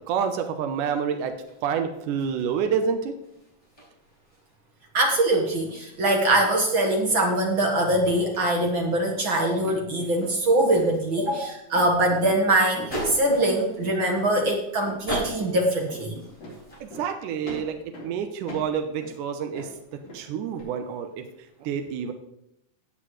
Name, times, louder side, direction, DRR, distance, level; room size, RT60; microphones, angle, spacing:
voice 1, 0.1-1.3 1.6-3.2 16.8-19.7 20.1-21.3 21.6-22.1, right 7 dB, 85° right, 6 dB, 2.3 m, -28 dB
sound 1, 1.2-17.0, right 1 dB, 10° left, 5.1 m, -41 dB
voice 2, 4.9-16.2, right 1 dB, 50° right, 1 dB, 1.7 m, -23 dB
sound 2, 8.0-8.3 8.6-8.9 9.1-9.3 9.6-9.8 10.2-10.4 10.7-10.9 11.2-11.4 11.7-12.4 12.8-13.0 13.3-13.4 13.8-14.0 14.3-14.5 14.9-15.1 15.4-15.6 15.9-16.0 16.4-16.6 16.9-17.1 17.4-18.1 18.5-19.2 19.5-20.3 20.5-20.6, equal, 65° left, 5.3 m, -40 dB
16.0 x 8.4 x 3.1 m, 0.81 s
omnidirectional pair, 3.6 m